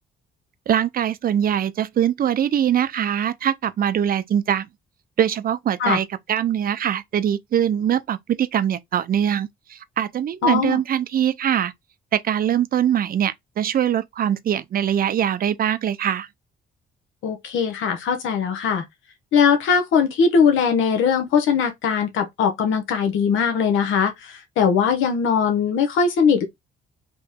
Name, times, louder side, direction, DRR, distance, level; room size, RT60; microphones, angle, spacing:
voice 1, 0.7-4.7 5.2-11.7 12.1-16.3, right 9 dB, 45° right, 0.5 m, -22 dB
voice 2, 10.4-10.8 17.2-18.8 19.3-26.5, left 6 dB, 80° left, 0.8 m, -20 dB
3.0 x 2.7 x 3.5 m
cardioid pair, 90°, 20 cm